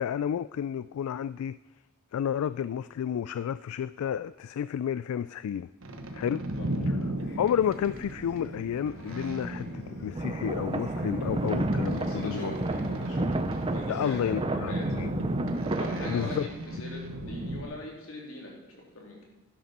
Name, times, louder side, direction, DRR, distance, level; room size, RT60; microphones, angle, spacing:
voice 1, 0.0-1.6 2.1-5.7 6.1-6.4 6.9-7.0 7.4-12.5 13.9-15.1 16.1-16.5, left 9 dB, 85° left, 16 dB, 0.3 m, -31 dB
sound 1, 5.8-17.6, right 1 dB, 65° right, 1.2 m, -35 dB
sound 2, 7.2-14.3, left 1 dB, 50° left, 1.6 m, -51 dB
sound 3, 10.1-16.4, right 2 dB, 25° right, 0.6 m, -32 dB
voice 2, 11.8-14.2 14.5-15.0 15.7-19.2, left 1 dB, 70° left, -2 dB, 3.2 m, -41 dB
11.5 x 11.0 x 4.3 m, 1.1 s
head